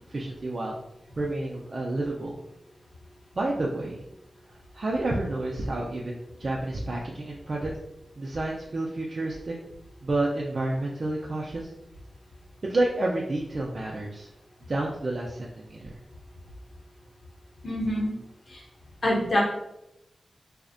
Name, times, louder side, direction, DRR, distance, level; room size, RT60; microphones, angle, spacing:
voice 1, 0.1-0.7 1.2-2.4 3.4-4.0 4.7-7.7 8.2-9.6 10.0-11.7 12.6-14.3 14.7-16.0, right 2 dB, 50° right, -2 dB, 0.3 m, -29 dB
voice 2, 17.6-18.1 18.5-18.6 19.0-19.4, left 1 dB, 55° left, -3 dB, 0.7 m, -25 dB
2.5 x 2.0 x 2.4 m, 0.85 s
wide cardioid pair, 75°, 0 cm